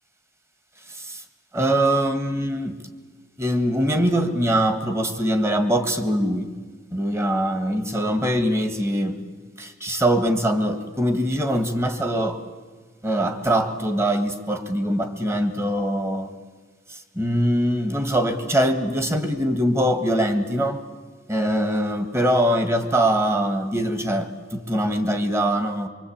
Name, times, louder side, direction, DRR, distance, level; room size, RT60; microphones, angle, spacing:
voice 1, 0.9-1.2 1.5-2.8 3.4-6.5 6.9-9.2 9.6-12.4 13.0-16.3 16.9-20.8 21.3-25.9, right 1 dB, 15° right, 8 dB, 1.8 m, -23 dB
24.5 x 24.5 x 8.8 m, 1.5 s
head